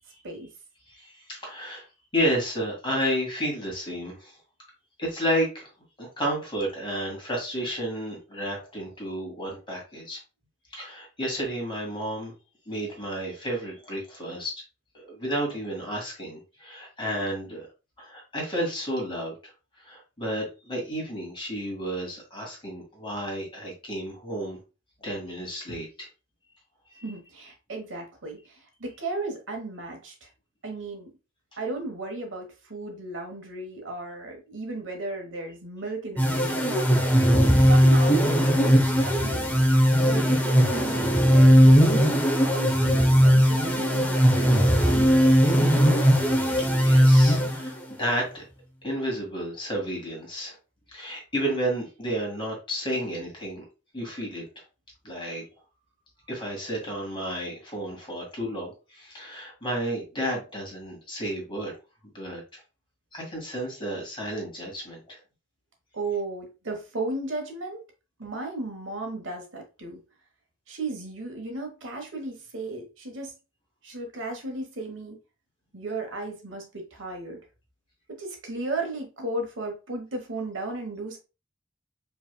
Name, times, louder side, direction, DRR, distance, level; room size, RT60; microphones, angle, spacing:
voice 1, 0.9-1.9 2.1-4.4 5.0-5.7 6.0-10.2 10.7-12.3 12.7-14.6 15.0-17.7 18.0-19.4 19.8-24.6 25.0-26.1 27.0-27.1 37.2-37.3 46.5-48.4 48.8-50.6 50.9-53.7 53.9-54.4 55.0-55.4 56.3-61.7 62.1-62.6 63.1-65.2, equal, 25° left, 1.9 m, -31 dB
voice 2, 27.0-30.1 30.6-31.1 31.6-36.9 37.7-39.7 40.0-42.1 42.4-45.5 65.9-67.8 68.2-70.0 70.7-73.3 73.8-75.2 75.7-77.4 78.1-81.2, right 2 dB, 70° right, 1.1 m, -35 dB
sound 1, 36.2-47.9, equal, 10° left, 0.7 m, -19 dB
5.0 x 3.3 x 2.2 m
head